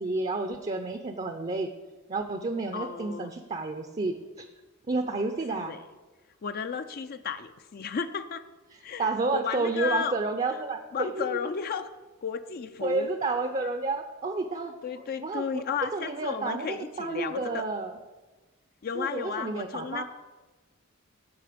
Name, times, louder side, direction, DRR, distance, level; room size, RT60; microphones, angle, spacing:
voice 1, 0.0-1.7 2.1-4.5 4.9-5.7 9.0-11.4 12.8-14.7 15.2-15.6 15.9-17.9 19.0-20.0, right 3 dB, 30° right, 7 dB, 0.5 m, -30 dB
voice 2, 2.7-3.3 5.5-5.8 6.4-8.4 8.8-10.1 10.9-11.9 12.2-13.1 14.8-17.6 18.8-20.0, left 6 dB, 45° left, 9 dB, 0.4 m, -33 dB
15.0 x 5.5 x 5.1 m, 1.2 s
head